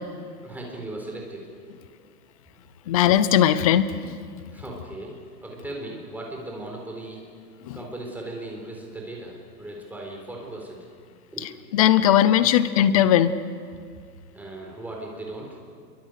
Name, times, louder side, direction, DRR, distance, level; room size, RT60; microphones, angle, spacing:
voice 1, 0.4-1.5 4.5-7.3 7.7-10.9 11.3-11.4 14.3-15.6, right 1 dB, 5° right, 0 dB, 4.1 m, -37 dB
voice 2, 2.9-4.1 7.7-7.8 11.7-13.3, left 11 dB, 20° left, 14 dB, 0.6 m, -18 dB
28.5 x 23.5 x 6.6 m, 2.1 s
hypercardioid pair, 155°, 50 cm